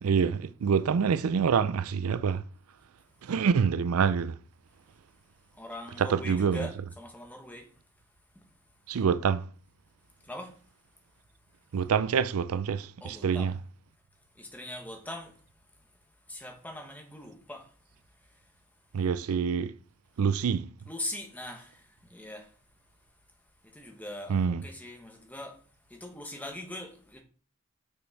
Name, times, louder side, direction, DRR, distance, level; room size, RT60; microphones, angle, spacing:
voice 1, 0.0-2.4 3.2-4.3 6.0-6.7 8.9-9.5 11.7-13.5 18.9-19.7 20.2-20.7 24.3-24.6, right 6 dB, 85° right, 0.4 m, -26 dB
voice 2, 5.5-7.7 8.3-8.4 10.2-10.6 13.0-13.5 14.3-15.4 15.8-15.9 16.3-17.8 18.1-18.5 20.9-22.6 23.6-25.6 25.9-27.2, left 1 dB, 10° left, 1.3 m, -42 dB
6.3 x 5.9 x 4.6 m
head